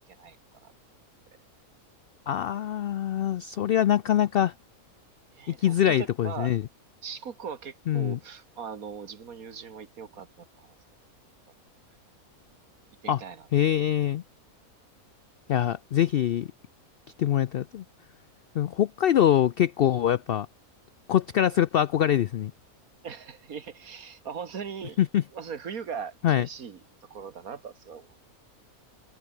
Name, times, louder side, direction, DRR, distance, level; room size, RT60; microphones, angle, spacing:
voice 1, 2.3-4.5 5.5-6.6 7.9-8.2 13.1-13.2 13.5-14.2 15.5-16.5 17.2-17.8 18.5-20.5 21.1-22.5 25.0-25.2 26.2-26.5, left 10 dB, 85° left, 0.5 m, -24 dB
voice 2, 5.3-6.5 7.0-10.8 13.0-13.5 23.0-25.0 25.3-26.8 27.1-28.2, right 6 dB, 75° right, 2.0 m, -39 dB
omnidirectional pair, 1.5 m